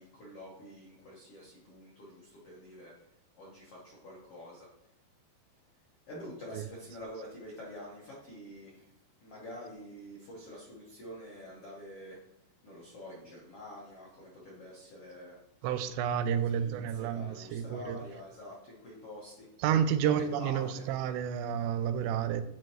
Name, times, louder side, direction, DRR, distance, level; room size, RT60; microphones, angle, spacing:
voice 1, 0.0-4.7 6.1-8.9 9.2-12.2 12.6-15.4 16.2-19.5 20.0-20.8, left 1 dB, 75° left, 1.3 m, -47 dB
voice 2, 15.6-18.0 19.6-22.4, right 8 dB, 85° right, 2.7 m, -30 dB
10.5 x 4.3 x 3.1 m
omnidirectional pair, 4.8 m